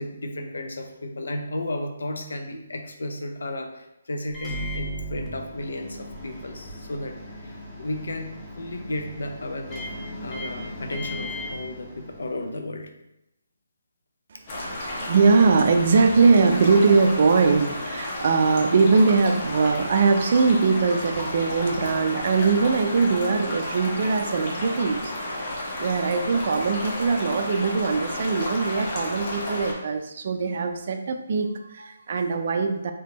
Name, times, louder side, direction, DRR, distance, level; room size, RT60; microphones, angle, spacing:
voice 1, 0.0-9.9 10.2-12.9, left 1 dB, 80° left, 5 dB, 0.5 m, -34 dB
Microwave oven, 4.3-12.5, equal, 10° left, 0.6 m, -37 dB
voice 2, 14.3-25.1 25.8-32.9, right 4 dB, 50° right, 6 dB, 0.4 m, -21 dB
sound 1, 14.5-29.7, left 1 dB, 40° left, 0.9 m, -32 dB
3.4 x 2.9 x 2.8 m, 0.89 s
hypercardioid pair, 160°, 0 cm